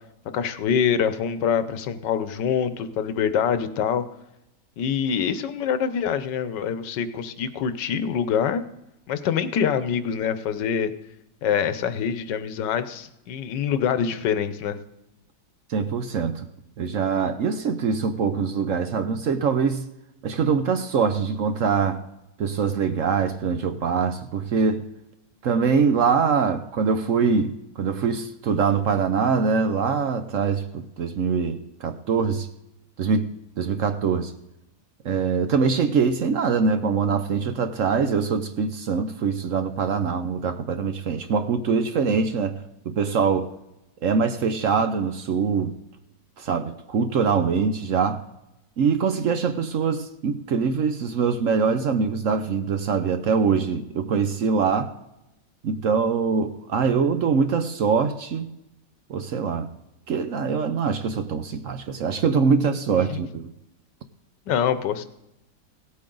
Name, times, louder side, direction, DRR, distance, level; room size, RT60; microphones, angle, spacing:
voice 1, 0.3-4.0 4.8-8.6 9.1-10.9 11.4-14.8 63.1-63.2 64.5-65.0, left 7 dB, 90° left, 1.5 m, -25 dB
voice 2, 15.7-16.5 16.8-19.9 20.2-22.0 22.4-24.8 25.4-32.5 33.0-34.3 35.0-43.5 44.0-45.8 46.4-48.2 48.8-54.9 55.6-58.5 59.1-59.7 60.1-63.5, right 5 dB, 60° right, 0.9 m, -23 dB
17.0 x 8.5 x 3.8 m
omnidirectional pair, 1.8 m